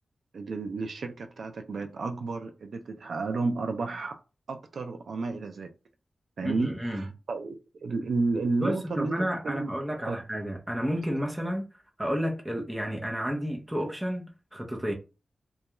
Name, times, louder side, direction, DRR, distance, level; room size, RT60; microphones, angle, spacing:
voice 1, 0.3-4.2 4.5-5.7 6.4-7.6 7.8-9.7 10.1-10.2, right 3 dB, 70° right, 0.3 m, -31 dB
voice 2, 6.4-7.1 8.6-11.7 12.0-14.2 14.5-14.9, equal, 5° right, 0.7 m, -31 dB
2.3 x 2.2 x 2.9 m
wide cardioid pair, 135°, 0 cm